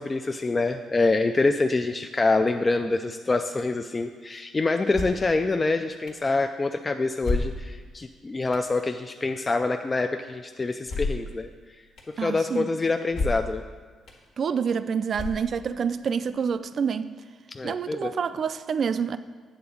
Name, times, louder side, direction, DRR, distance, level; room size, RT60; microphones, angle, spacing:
voice 1, 0.0-11.5 12.1-13.6 17.5-18.1, left 3 dB, 25° left, 0.3 m, -26 dB
sound 1, 4.9-5.3 6.1-6.2 7.2-7.9 8.5-8.7 10.9-11.3 12.0-12.1 13.1-13.6 14.1-14.2 15.1-15.7, left 2 dB, 75° left, 1.5 m, -30 dB
voice 2, 12.2-12.7 14.4-17.2 17.6-19.2, right 6 dB, 50° right, 0.3 m, -27 dB
8.7 x 3.8 x 7.0 m
cardioid pair, 90°, 0 cm